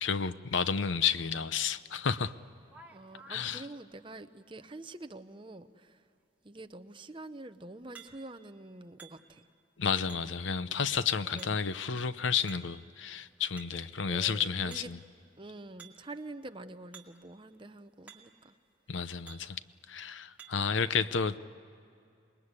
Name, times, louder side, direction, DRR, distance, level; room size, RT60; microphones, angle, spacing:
voice 1, 0.0-2.3 3.3-3.6 9.8-15.0 18.9-19.6 19.9-21.4, left 6 dB, 85° left, 14 dB, 0.7 m, -31 dB
sound 1, 2.1-2.2 2.6-3.5 7.9-8.5 9.0-9.5 10.1-10.5 11.4-11.8 12.5-12.9 13.3-13.9 14.7-15.1 15.8-16.1 16.9-17.2 17.5-17.6 18.1-18.5 19.3-19.6 20.4-20.8, right 6 dB, 10° right, 2.2 m, -54 dB
voice 2, 2.9-6.0 6.4-9.4 11.3-11.7 14.1-14.9 15.4-18.6, right 2 dB, 25° right, 9 dB, 0.8 m, -46 dB
27.0 x 21.0 x 9.7 m, 2.5 s
head